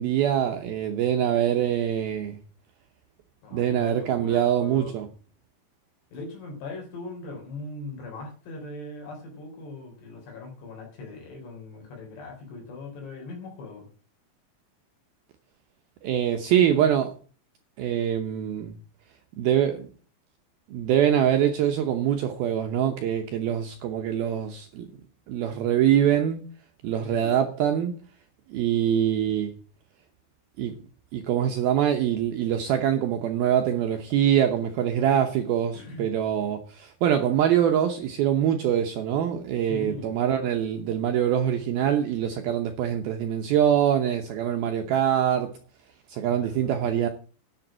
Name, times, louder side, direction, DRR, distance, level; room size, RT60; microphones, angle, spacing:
voice 1, 0.0-2.4 3.5-5.1 16.0-17.2 17.8-18.8 19.4-19.9 20.7-24.9 25.3-26.4 26.8-28.0 28.5-29.5 30.6-30.8 31.1-45.5 46.1-47.1, right 10 dB, 80° right, 2.2 m, -24 dB
voice 2, 3.4-4.9 6.1-13.9 27.0-27.3 35.7-36.1 39.6-40.1 46.3-46.9, left 3 dB, 60° left, 5.7 m, -40 dB
10.5 x 7.0 x 7.3 m
omnidirectional pair, 5.6 m